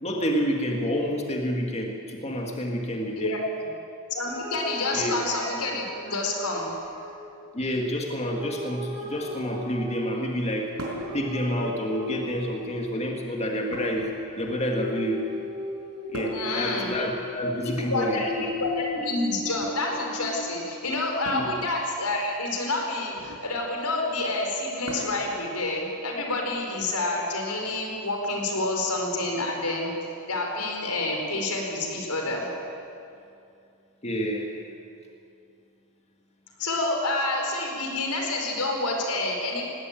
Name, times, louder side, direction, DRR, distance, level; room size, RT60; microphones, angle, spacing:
voice 1, 0.0-3.3 4.9-5.2 7.5-10.8 11.1-15.3 16.1-18.5 21.3-21.6 34.0-34.5, equal, 30° left, 1 dB, 1.9 m, -28 dB
voice 2, 4.1-6.7 16.3-16.9 17.7-29.9 30.3-32.5 36.6-39.6, left 2 dB, 90° left, 1 dB, 4.6 m, -28 dB
sound 1, 4.2-7.2 8.2-13.0 14.4-20.5, left 1 dB, 25° right, 5.3 m, -37 dB
sound 2, 10.8-11.1 12.2-12.7 13.7-14.8 16.1-16.6 17.7-18.8 19.5-19.8 21.2-21.5 23.1-23.5 24.8-25.3 26.7-26.8 28.1-28.2, right 1 dB, 70° right, 5.2 m, -39 dB
19.5 x 17.0 x 9.1 m, 2.5 s
head